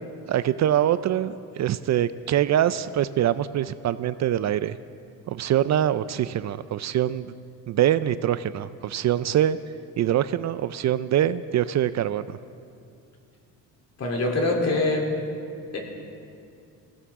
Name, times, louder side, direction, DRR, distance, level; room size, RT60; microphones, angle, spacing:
voice 1, 0.3-4.8 5.3-7.3 7.7-9.6 10.0-12.4, right 11 dB, 50° right, 14 dB, 0.5 m, -24 dB
voice 2, 14.0-15.0 15.7-15.8, left 2 dB, 45° left, 0 dB, 3.3 m, -23 dB
21.0 x 16.0 x 3.7 m, 2.4 s
cardioid pair, 95°, 35 cm